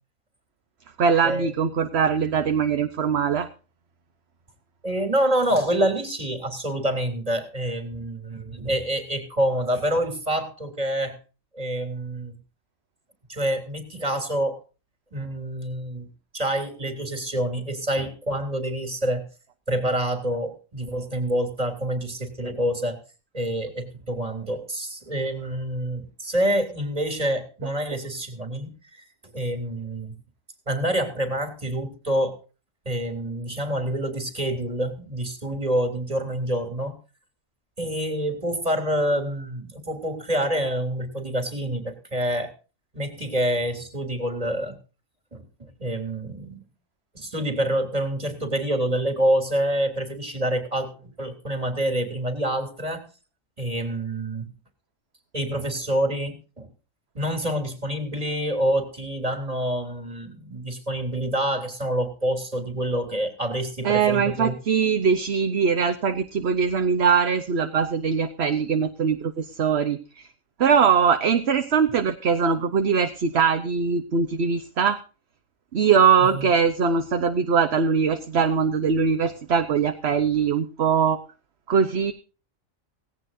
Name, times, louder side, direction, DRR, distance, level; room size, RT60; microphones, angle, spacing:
voice 1, 1.0-3.5 63.8-70.3 70.6-75.0 75.7-81.2 81.7-82.1, right 6 dB, 55° right, 8 dB, 1.2 m, -21 dB
voice 2, 4.8-11.2 11.5-12.4 13.3-14.6 15.1-16.1 16.3-19.3 19.7-23.0 23.3-29.0 29.3-30.1 30.7-32.4 32.9-36.9 37.8-42.5 42.9-44.8 45.3-46.7 47.1-53.1 53.6-54.5 55.3-56.7 57.1-64.5 76.2-76.4, right 1 dB, 25° right, 6 dB, 3.4 m, -27 dB
17.5 x 16.5 x 2.7 m, 0.35 s
omnidirectional pair, 1.4 m